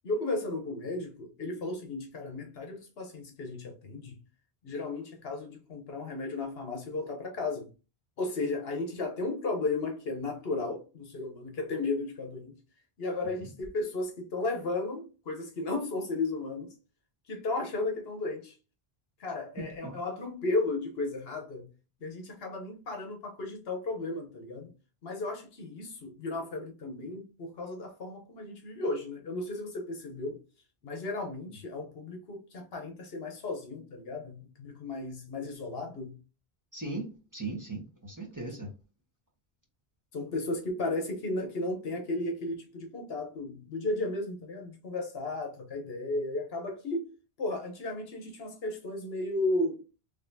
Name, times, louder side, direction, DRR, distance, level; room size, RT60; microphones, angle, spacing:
voice 1, 0.0-4.2 4.6-7.7 8.2-12.5 13.0-16.7 17.3-18.5 19.2-21.7 22.0-24.7 25.0-30.4 30.8-36.2 40.1-47.1 47.4-49.8, left 2 dB, 70° left, 1.1 m, -34 dB
voice 2, 36.7-38.7, right 2 dB, 20° right, 1.2 m, -38 dB
4.0 x 3.1 x 2.7 m
omnidirectional pair, 1.1 m